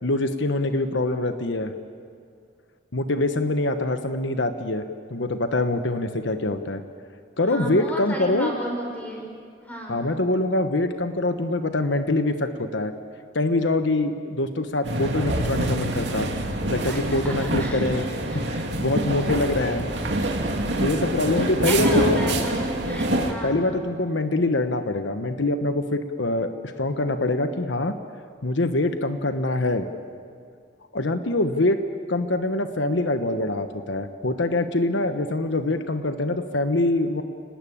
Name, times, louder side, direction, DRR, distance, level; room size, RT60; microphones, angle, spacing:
voice 1, 0.0-1.7 2.9-4.8 5.1-6.8 7.4-8.5 9.9-12.9 13.3-16.3 16.7-18.1 18.3-19.9 20.8-22.2 23.1-28.0 28.4-29.9 30.9-31.8 32.1-37.2, left 2 dB, 75° left, 8 dB, 1.1 m, -24 dB
voice 2, 7.4-9.2 9.7-10.0 16.8-17.3 17.6-17.8 18.3-18.5 21.4-23.6, equal, 10° left, 0 dB, 5.6 m, -33 dB
sound 1, 14.8-23.3, right 1 dB, 65° right, 2.6 m, -26 dB
30.0 x 19.5 x 8.7 m, 2.3 s
head